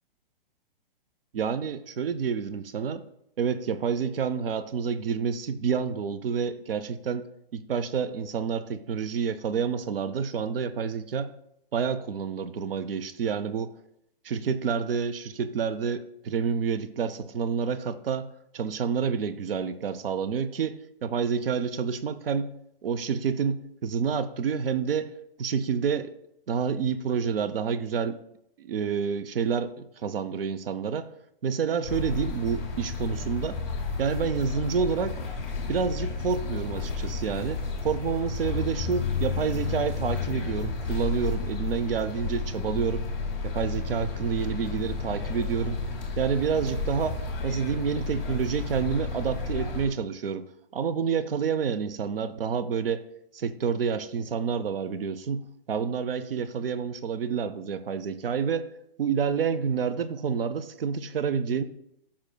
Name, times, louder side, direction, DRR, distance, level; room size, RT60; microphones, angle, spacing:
voice 1, 1.3-3.0 3.4-7.3 7.5-11.3 11.7-13.7 14.2-18.3 18.5-22.5 22.8-25.1 25.4-26.1 26.5-28.2 28.6-31.1 31.4-33.6 34.0-35.2 35.7-43.0 43.4-45.8 46.2-47.2 47.4-50.5 50.7-53.0 53.3-55.4 55.7-58.7 59.0-61.6, right 6 dB, 75° right, 14 dB, 0.6 m, -28 dB
sound 1, 31.8-49.9, left 4 dB, 5° left, 0.6 m, -32 dB
14.0 x 5.8 x 2.3 m, 0.77 s
hypercardioid pair, 175°, 29 cm